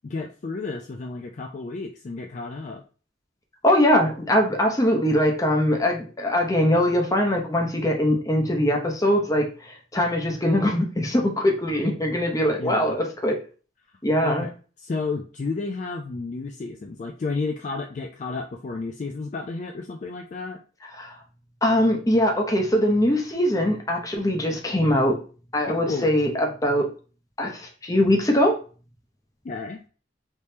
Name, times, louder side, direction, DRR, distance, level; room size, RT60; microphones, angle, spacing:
voice 1, 0.0-2.8 12.6-13.0 14.2-14.5 14.8-20.6 25.7-26.1 29.4-29.8, left 3 dB, 40° left, 2 dB, 0.3 m, -32 dB
voice 2, 3.6-13.4 14.0-14.5 21.0-21.1 21.6-25.2 25.5-26.9 27.4-28.6, left 1 dB, 20° left, 2 dB, 0.7 m, -22 dB
3.6 x 3.0 x 2.7 m, 0.37 s
head